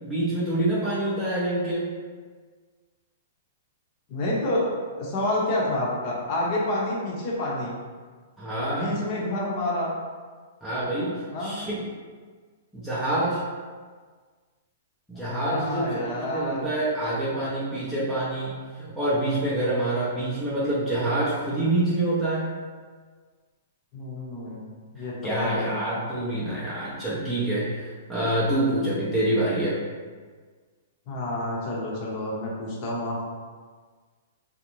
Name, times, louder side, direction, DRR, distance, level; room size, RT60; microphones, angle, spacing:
voice 1, 0.0-1.9 8.4-9.0 10.6-11.9 12.7-13.4 15.1-22.5 25.2-29.8, right 1 dB, ahead, -11 dB, 0.6 m, -26 dB
voice 2, 4.1-4.7 5.0-7.8 8.7-9.9 11.3-11.6 15.1-16.7 23.9-24.7 24.9-25.8 31.1-33.2, left 1 dB, 40° left, -4 dB, 0.7 m, -28 dB
2.5 x 2.0 x 3.0 m, 1.5 s
hypercardioid pair, 145°, 0 cm